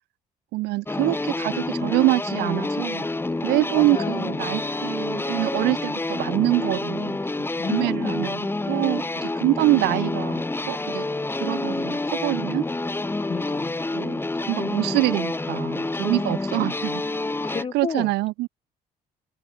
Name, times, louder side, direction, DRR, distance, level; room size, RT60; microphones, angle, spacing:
voice 1, 0.5-3.1 3.4-7.2 7.7-11.1 11.4-12.6 13.9-17.0 17.7-18.5, right 20 dB, 90° right, 1.3 m, -25 dB
sound 1, 0.9-17.6, left 2 dB, 15° left, 3.0 m, -28 dB
voice 2, 3.4-4.7 7.6-8.4 13.2-13.9 17.4-18.1, left 5 dB, 30° left, 6.3 m, -32 dB
cardioid pair, 110°, 17 cm